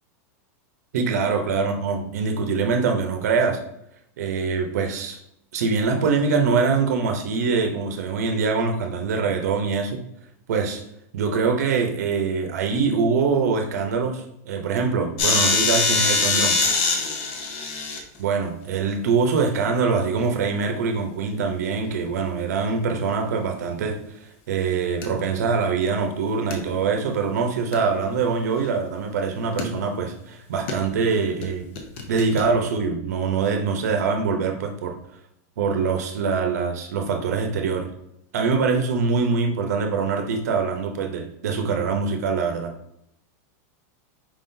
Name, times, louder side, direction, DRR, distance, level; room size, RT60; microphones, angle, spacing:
voice 1, 0.9-3.6 4.2-5.2 5.5-10.0 10.5-10.8 11.1-16.6 18.2-24.0 24.5-31.6 32.1-35.0 35.6-37.9 38.3-42.7, right 5 dB, 75° right, 4 dB, 0.7 m, -24 dB
sound 1, 15.2-18.0 22.0-22.2 25.0-25.3 26.5-26.6 27.0-27.1 27.7-28.7 29.6-30.2 30.7-30.8 31.4-31.5 31.8-32.4, left 4 dB, 45° left, 0.7 m, -24 dB
4.8 x 3.7 x 2.7 m, 0.78 s
supercardioid pair, 175°, 9 cm